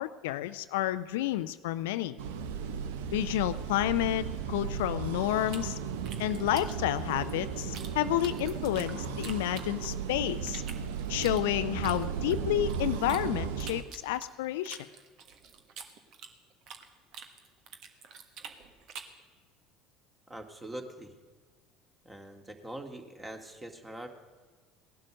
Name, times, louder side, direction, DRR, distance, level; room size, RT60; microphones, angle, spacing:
voice 1, 0.0-2.2 3.1-5.8 6.2-10.6 11.1-14.9, left 13 dB, 70° left, 12 dB, 0.5 m, -30 dB
sound 1, 2.2-13.8, right 7 dB, 70° right, 0.8 m, -35 dB
sound 2, 5.5-7.9 8.2-10.1 10.5-13.2 13.6-16.9 17.1-19.2, right 6 dB, 55° right, 1.5 m, -47 dB
voice 2, 20.3-21.1 22.0-24.1, right 1 dB, 15° right, 4 dB, 2.1 m, -43 dB
18.0 x 11.5 x 6.4 m, 1.4 s
figure-of-eight pair, 65°, 0 cm